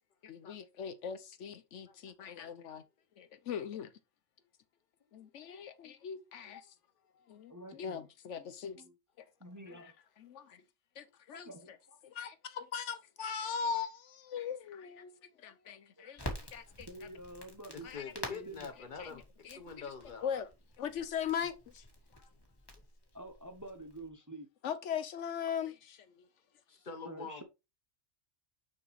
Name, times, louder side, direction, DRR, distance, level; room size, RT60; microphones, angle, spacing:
voice 1, 0.2-2.8 3.2-3.9 5.1-6.7 7.3-8.8 9.2-9.3 9.7-9.9 10.2-10.6 11.0-11.5 12.0-16.9 17.8-18.0 19.0-19.1 19.4-19.9 20.2-20.5 20.8-21.8 24.6-26.2, left 7 dB, 75° left, 1.0 m, -40 dB
voice 2, 7.5-8.0 8.7-8.9 9.4-9.9 11.3-12.0 16.0-16.1 16.9-17.9 18.1-18.7 23.1-24.5 27.0-27.4, right 1 dB, 15° right, 0.8 m, -48 dB
Crackle, 16.2-24.1, left 1 dB, 20° left, 1.6 m, -48 dB
voice 3, 17.7-20.3 22.1-22.3 26.7-27.4, left 5 dB, 40° left, 1.0 m, -46 dB
6.1 x 5.9 x 3.1 m
omnidirectional pair, 1.3 m